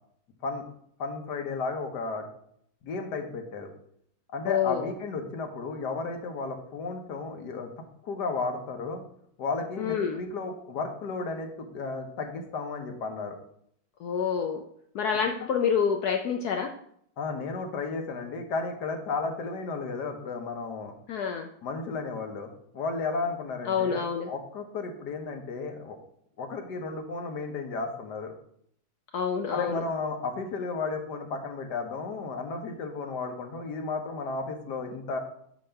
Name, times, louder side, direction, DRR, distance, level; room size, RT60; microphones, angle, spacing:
voice 1, 1.0-2.3 2.8-3.7 4.3-7.7 8.0-9.0 9.4-13.4 17.2-20.9 21.6-22.5 22.7-26.0 26.4-28.3 29.5-35.2, left 4 dB, 60° left, 5 dB, 1.4 m, -33 dB
voice 2, 4.5-4.9 9.8-10.2 14.0-14.6 14.9-16.7 21.1-21.5 23.7-24.3 29.1-29.8, left 7 dB, 80° left, 4 dB, 0.8 m, -27 dB
8.7 x 3.0 x 5.6 m, 0.68 s
omnidirectional pair, 2.3 m